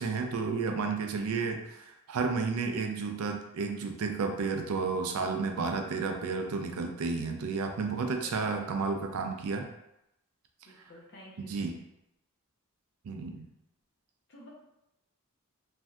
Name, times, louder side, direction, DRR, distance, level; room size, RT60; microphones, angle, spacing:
voice 1, 0.0-9.7 11.4-11.8 13.0-13.5, right 4 dB, 75° right, 4 dB, 0.4 m, -32 dB
voice 2, 7.9-8.5 10.7-11.7 14.3-14.5, left 1 dB, 55° left, -3 dB, 0.7 m, -52 dB
3.2 x 2.6 x 2.3 m, 0.86 s
head